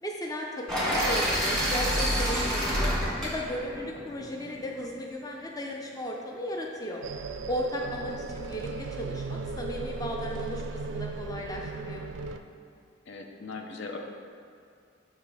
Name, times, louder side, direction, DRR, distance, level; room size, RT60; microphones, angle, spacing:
voice 1, 0.0-2.9 3.2-7.0 7.5-12.0, equal, 20° left, 0 dB, 0.5 m, -35 dB
sound 1, 0.7-4.7, equal, 5° left, 1.4 m, -28 dB
sound 2, 7.0-12.4, right 4 dB, 65° right, 0.3 m, -37 dB
voice 2, 7.8-8.2 13.1-14.0, left 3 dB, 65° left, 3 dB, 0.6 m, -40 dB
7.0 x 3.3 x 4.8 m, 2.3 s
head